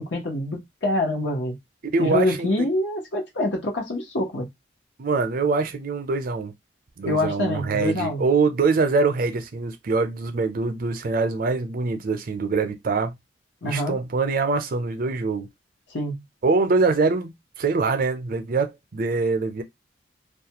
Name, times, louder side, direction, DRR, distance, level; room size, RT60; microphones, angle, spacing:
voice 1, 0.0-1.6 2.0-4.5 7.0-8.2 13.6-14.0 15.9-16.2, left 2 dB, 85° left, 0.9 m, -25 dB
voice 2, 1.8-2.6 5.0-6.5 7.0-13.2 13.6-15.5 16.4-19.6, right 4 dB, 55° right, 0.5 m, -24 dB
2.4 x 2.2 x 2.8 m
head